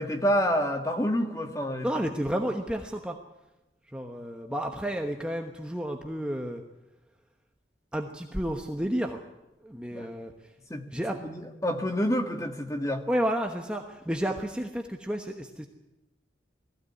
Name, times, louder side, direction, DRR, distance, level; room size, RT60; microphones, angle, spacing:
voice 1, 0.0-1.9 9.9-10.1 10.7-13.0, equal, 15° left, 5 dB, 1.7 m, -28 dB
voice 2, 1.8-3.2 3.9-6.6 7.9-9.2 9.6-10.3 10.9-11.2 13.1-15.7, equal, 5° right, 3 dB, 1.1 m, -31 dB
20.0 x 15.5 x 9.7 m, 0.98 s
head